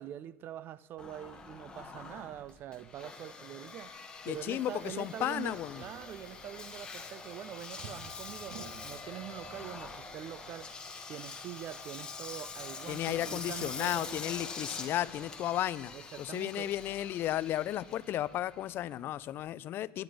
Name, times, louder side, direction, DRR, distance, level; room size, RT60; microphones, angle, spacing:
voice 1, 0.0-10.8 11.1-14.2 15.9-16.7, right 11 dB, 35° right, 0.3 m, -44 dB
Engine, 1.0-19.4, left 4 dB, 15° left, 1.1 m, -45 dB
voice 2, 4.3-5.8 12.9-20.0, left 12 dB, 40° left, 0.3 m, -34 dB
sound 1, 5.4-14.0, right 5 dB, 70° right, 1.1 m, -55 dB
10.5 x 9.5 x 5.0 m
cardioid pair, 155°, 6 cm